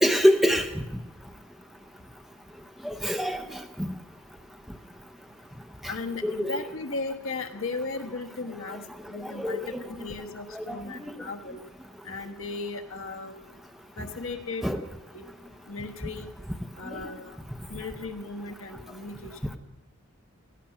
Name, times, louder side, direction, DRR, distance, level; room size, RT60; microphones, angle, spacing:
voice 1, 0.0-0.7 2.8-3.9 5.8-5.9 6.2-6.6 9.2-9.8 10.5-10.8 11.0-11.1 14.6-14.8 16.9-17.0, equal, ahead, 6 dB, 0.8 m, -25 dB
voice 2, 5.9-11.6 12.0-13.3 14.0-14.6 15.1-15.2 15.7-16.3 16.7-17.4 17.7-19.3, left 3 dB, 65° left, 5 dB, 1.3 m, -36 dB
16.5 x 15.0 x 5.8 m, 1.0 s
head